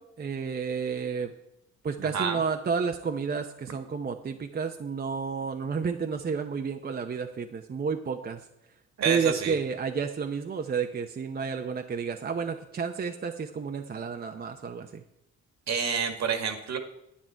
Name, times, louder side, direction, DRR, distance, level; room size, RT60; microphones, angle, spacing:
voice 1, 0.0-1.3 1.8-8.5 9.0-15.0, right 5 dB, 30° right, 5 dB, 0.7 m, -31 dB
voice 2, 9.0-9.6 15.7-16.8, right 6 dB, 60° right, 6 dB, 1.8 m, -28 dB
10.0 x 9.1 x 4.5 m, 0.82 s
cardioid pair, 90°, 30 cm